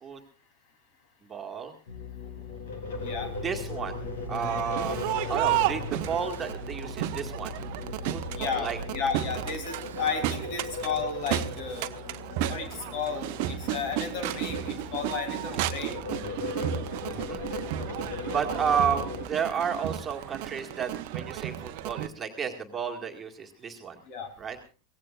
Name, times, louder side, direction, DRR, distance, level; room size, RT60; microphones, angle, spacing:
voice 1, 1.2-1.7 3.4-5.0 5.3-7.5 8.1-8.8 17.0-17.4 18.3-24.0 24.4-24.6, right 7 dB, 20° right, 2 dB, 2.0 m, -32 dB
sound 1, 1.9-19.2, left 4 dB, 60° left, 4.1 m, -38 dB
sound 2, 2.9-10.1, right 3 dB, 65° right, 1.3 m, -42 dB
Crowd, 4.3-22.1, right 12 dB, 45° right, 0.9 m, -33 dB
voice 2, 8.4-11.9 12.5-16.0 24.1-24.3, left 5 dB, 45° left, 6 dB, 3.4 m, -33 dB
24.0 x 17.5 x 2.5 m, 0.34 s
figure-of-eight pair, 90°, 0 cm